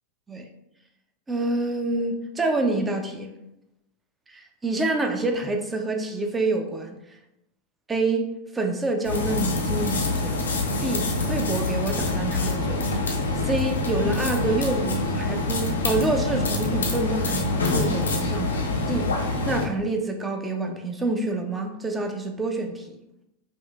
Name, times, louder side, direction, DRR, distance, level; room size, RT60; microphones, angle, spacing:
voice 1, 1.3-3.3 4.6-7.0 7.9-10.5 10.8-12.8 13.4-19.1 19.5-22.9, right 2 dB, 15° right, 4 dB, 0.5 m, -27 dB
sound 1, 9.0-19.7, left 2 dB, 70° left, 0.6 m, -26 dB
5.3 x 2.5 x 2.3 m, 0.88 s
figure-of-eight pair, 90°, 0 cm